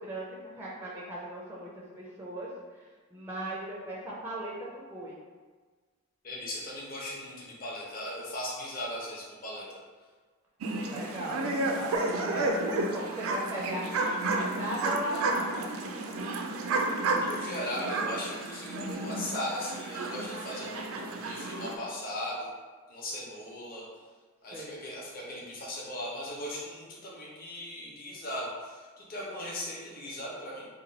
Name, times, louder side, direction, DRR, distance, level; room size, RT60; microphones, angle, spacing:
voice 1, 0.0-1.7 2.0-2.5 3.1-5.2 10.8-15.7 24.5-24.8, right 1 dB, 10° right, -5 dB, 0.4 m, -38 dB
voice 2, 6.2-9.8 17.1-22.5 22.9-23.8 24.4-30.7, left 1 dB, 40° left, -5 dB, 0.7 m, -38 dB
sound 1, 10.6-21.8, right 2 dB, 75° right, 0.4 m, -32 dB
2.9 x 2.2 x 3.9 m, 1.4 s
head